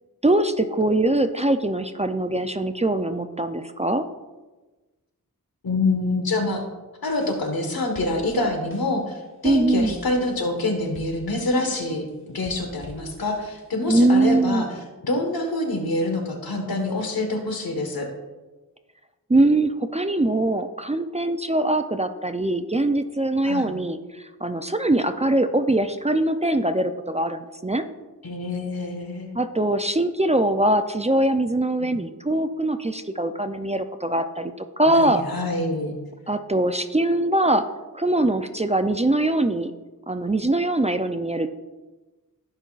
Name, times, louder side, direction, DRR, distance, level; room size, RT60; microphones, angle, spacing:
voice 1, 0.2-4.0 9.4-10.0 13.9-14.7 19.3-27.8 29.3-35.2 36.3-37.6 37.9-39.7 40.1-41.5, right 1 dB, 20° right, 8 dB, 0.5 m, -22 dB
voice 2, 5.6-6.6 7.0-14.7 15.0-18.1 23.4-23.8 28.2-29.3 31.8-32.0 34.9-35.9, left 2 dB, 75° left, 4 dB, 1.5 m, -26 dB
sound 1, 7.1-7.7 8.0-9.1 9.5-12.1 12.5-13.8, left 2 dB, 35° left, 1.7 m, -45 dB
15.5 x 5.4 x 2.4 m, 1.2 s
wide cardioid pair, 55°, 36 cm